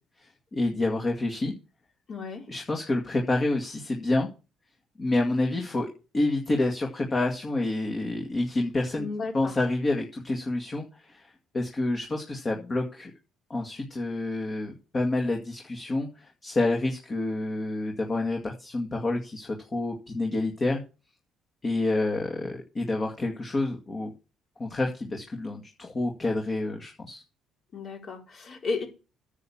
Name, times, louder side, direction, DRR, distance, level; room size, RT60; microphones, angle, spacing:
voice 1, 0.2-1.5 2.5-4.3 5.0-9.1 9.3-11.2 11.5-13.1 13.5-20.8 21.6-24.1 24.6-27.2, left 2 dB, 30° left, 2.1 m, -28 dB
voice 2, 2.1-2.4 9.0-9.5 27.7-28.9, left 4 dB, 45° left, 4.4 m, -33 dB
9.8 x 7.3 x 7.1 m
cardioid pair, 115°, 0 cm